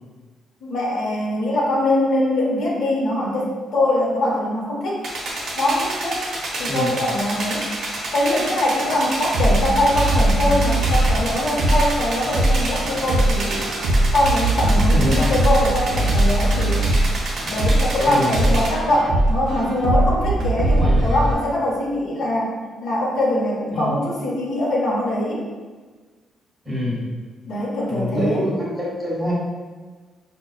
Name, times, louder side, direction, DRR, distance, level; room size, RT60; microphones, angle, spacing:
voice 1, 0.6-5.0 5.6-6.3 6.6-7.6 8.1-13.6 14.1-16.9 17.5-22.5 22.8-25.4 27.5-28.4, left 1 dB, 60° left, -4 dB, 0.7 m, -22 dB
sound 1, 5.0-18.7, right 1 dB, 50° right, 0.8 m, -29 dB
voice 2, 6.6-7.0 14.9-15.3 18.0-18.4 20.7-21.1 23.7-24.1 26.6-27.1 27.9-29.3, equal, 5° right, -7 dB, 1.2 m, -25 dB
sound 2, 9.3-21.3, right 1 dB, 85° right, 0.5 m, -20 dB
sound 3, 10.6-11.6, right 2 dB, 25° right, 0.4 m, -30 dB
5.0 x 2.2 x 2.3 m, 1.4 s
cardioid pair, 160°, 0 cm